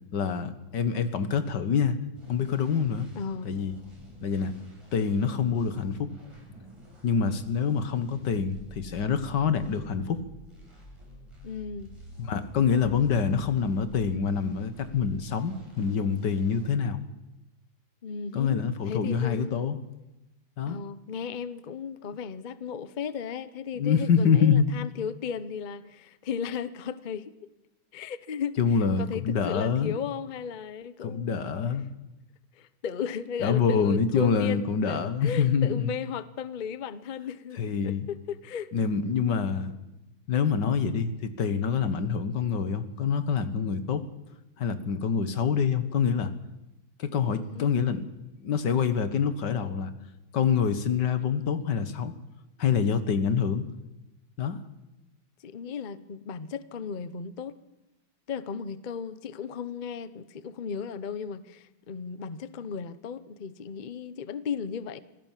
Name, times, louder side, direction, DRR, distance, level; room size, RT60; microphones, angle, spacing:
voice 1, 0.1-2.0 2.3-3.1 3.5-3.7 4.2-4.5 4.9-6.1 7.0-10.2 12.2-17.0 18.3-19.8 20.6-20.8 23.8-24.7 28.6-29.9 31.0-31.9 33.4-35.9 37.6-38.1 38.7-39.7 40.3-44.1 44.6-46.3 47.0-48.1 48.4-49.9 50.3-52.1 52.6-53.6 54.4-54.6, left 6 dB, 60° left, 1.9 m, -26 dB
sound 1, 2.1-16.7, left 1 dB, 15° right, 6.0 m, -49 dB
voice 2, 3.1-3.5 11.4-11.9 18.0-19.7 20.6-27.3 27.9-31.5 32.5-38.7 47.3-47.8 55.4-57.6 58.3-65.0, left 7 dB, 85° left, 0.4 m, -35 dB
26.0 x 16.5 x 7.4 m
omnidirectional pair, 2.2 m